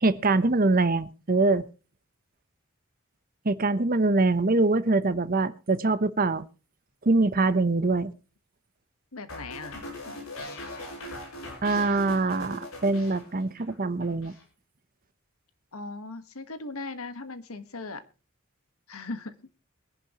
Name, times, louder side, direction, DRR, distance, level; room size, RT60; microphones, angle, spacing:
voice 1, 0.0-1.7 3.4-6.5 7.0-8.1 11.6-14.3, right 3 dB, 40° right, 0.9 m, -24 dB
voice 2, 9.1-9.8 15.7-18.0 18.9-19.3, left 3 dB, 90° left, 1.5 m, -38 dB
sound 1, 9.3-13.7 14.0-14.4, left 1 dB, 75° left, 5.5 m, -40 dB
23.0 x 11.0 x 3.0 m
head